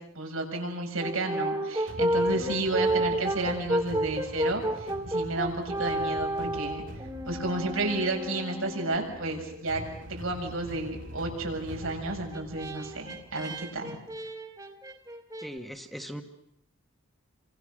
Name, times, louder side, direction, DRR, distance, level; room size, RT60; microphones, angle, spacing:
voice 1, 0.2-6.8 7.3-9.8 10.1-14.0, right 2 dB, 85° right, 2 dB, 7.1 m, -32 dB
Brass instrument, 1.0-9.3 11.8-15.5, right 1 dB, 20° right, 2.2 m, -31 dB
sound 1, 1.9-13.8, equal, 65° right, 3.7 m, -45 dB
voice 2, 2.3-2.6 15.4-16.2, equal, ahead, 4 dB, 1.5 m, -40 dB
29.5 x 26.0 x 6.5 m, 0.74 s
head